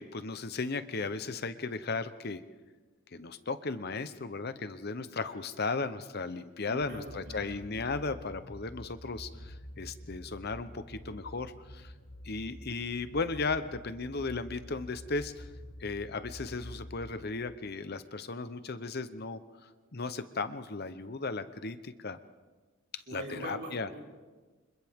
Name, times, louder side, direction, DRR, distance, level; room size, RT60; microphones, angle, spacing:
voice 1, 0.0-2.4 3.1-11.9 12.2-15.5 15.8-22.2 22.9-23.9, left 3 dB, 50° left, 11 dB, 0.9 m, -36 dB
voice 2, 6.7-7.6 23.1-24.0, right 1 dB, 50° right, -1 dB, 4.0 m, -43 dB
sound 1, 6.8-17.3, equal, 65° left, 2.3 m, -48 dB
29.5 x 26.0 x 3.7 m, 1.3 s
head